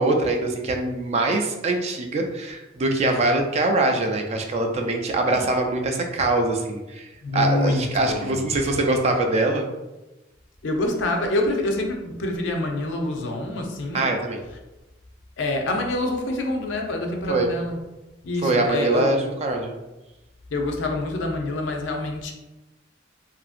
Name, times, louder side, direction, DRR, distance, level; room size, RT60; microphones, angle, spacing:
voice 1, 0.0-7.1 7.3-9.7 13.9-14.4 17.3-17.5 18.4-19.7, right 2 dB, 35° right, 3 dB, 0.3 m, -23 dB
voice 2, 7.2-8.5 10.6-14.1 15.4-17.8 18.2-19.1 20.5-22.3, left 2 dB, 70° left, 2 dB, 0.5 m, -26 dB
2.8 x 2.5 x 2.4 m, 1.0 s
head